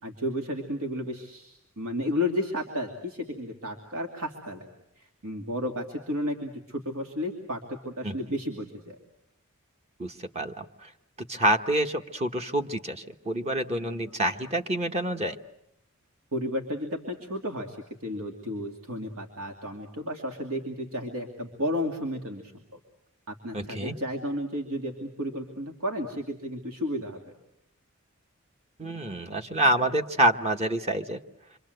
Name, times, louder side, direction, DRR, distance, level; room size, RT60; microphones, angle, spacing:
voice 1, 0.0-4.7 5.0-9.0 16.3-17.8 18.0-22.5 23.3-27.3, left 1 dB, 80° right, 2 dB, 2.6 m, -32 dB
voice 2, 10.0-10.9 11.3-15.4 23.5-23.9 28.8-31.2, right 1 dB, 30° right, 5 dB, 1.2 m, -27 dB
27.5 x 25.0 x 7.9 m, 0.79 s
head